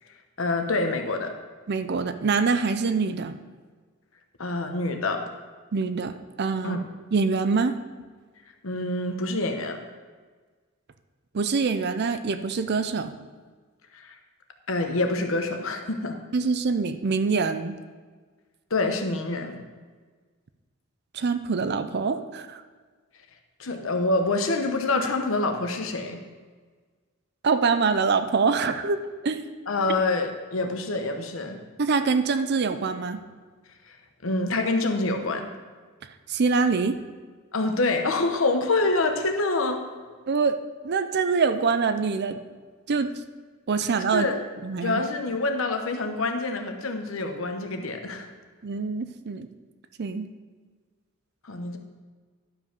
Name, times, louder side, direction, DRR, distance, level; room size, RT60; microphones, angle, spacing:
voice 1, 0.4-1.3 4.4-5.2 6.6-6.9 8.6-9.8 13.9-14.2 14.7-16.2 18.7-19.6 23.6-26.2 29.7-31.6 33.9-34.0 34.2-35.5 37.5-39.8 44.1-44.4 44.8-48.3 51.4-51.8, left 2 dB, 70° left, 5 dB, 1.0 m, -26 dB
voice 2, 1.7-3.4 5.7-6.8 7.1-7.8 11.3-13.1 16.3-17.8 21.1-22.6 27.4-29.5 31.8-33.2 36.3-37.0 40.3-40.6 40.8-42.4 42.9-43.1 43.7-44.3 44.6-45.0 48.6-49.5 50.0-50.3, right 4 dB, 50° right, 10 dB, 0.5 m, -25 dB
11.5 x 5.2 x 5.2 m, 1.5 s
head